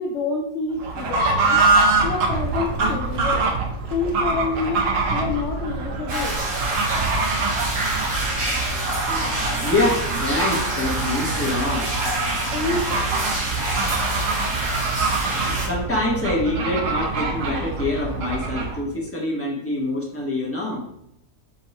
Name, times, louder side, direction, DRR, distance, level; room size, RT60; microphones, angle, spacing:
voice 1, 0.0-1.7 2.0-3.5 3.9-6.4 12.5-13.3, left 4 dB, 80° left, 1 dB, 0.6 m, -28 dB
Fowl / Bird, 0.8-18.8, right 3 dB, 60° right, 0.9 m, -25 dB
sound 1, 6.1-15.7, right 1 dB, 80° right, 2.0 m, -26 dB
voice 2, 9.1-11.9 15.3-20.9, left 2 dB, 10° left, -4 dB, 0.7 m, -25 dB
5.3 x 2.2 x 4.1 m, 0.78 s
omnidirectional pair, 1.8 m